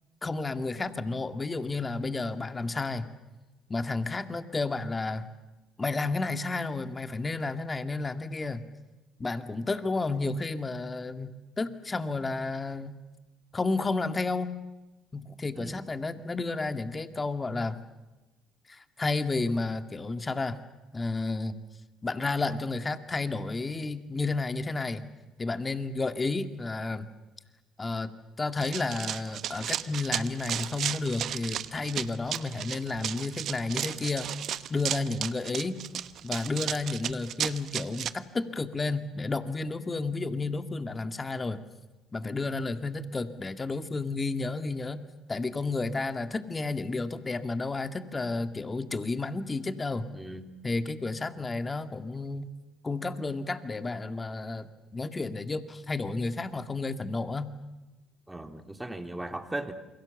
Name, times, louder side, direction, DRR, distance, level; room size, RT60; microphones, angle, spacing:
voice 1, 0.2-3.1 3.7-5.3 5.8-8.6 9.2-13.0 13.5-14.6 15.1-17.8 18.7-20.6 20.9-21.6 22.0-25.0 25.4-27.1 27.8-28.1 28.4-34.3 34.7-35.8 36.2-41.6 42.1-45.0 45.3-50.1 50.6-52.5 52.8-57.5, left 3 dB, 25° left, 9 dB, 2.0 m, -31 dB
Run, 28.6-38.1, right 10 dB, 65° right, 1.0 m, -34 dB
voice 2, 50.1-50.5 58.3-59.7, right 1 dB, 10° right, 6 dB, 2.9 m, -38 dB
28.5 x 23.0 x 7.1 m, 1.1 s
hypercardioid pair, 60°, 0 cm